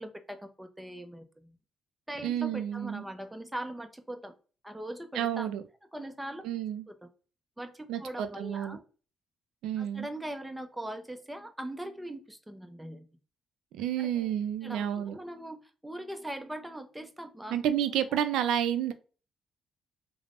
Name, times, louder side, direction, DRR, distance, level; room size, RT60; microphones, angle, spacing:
voice 1, 0.0-1.6 2.1-4.3 4.6-5.5 5.9-6.4 6.9-7.1 7.6-8.8 9.8-13.1 14.0-14.3 14.6-17.6, right 1 dB, 10° right, 7 dB, 0.5 m, -41 dB
voice 2, 2.2-3.0 5.1-5.6 6.4-6.9 7.9-8.8 9.6-10.1 13.7-15.2 17.5-18.9, right 10 dB, 85° right, 10 dB, 0.3 m, -30 dB
3.3 x 2.0 x 2.4 m, 0.37 s
cardioid pair, 90°, 0 cm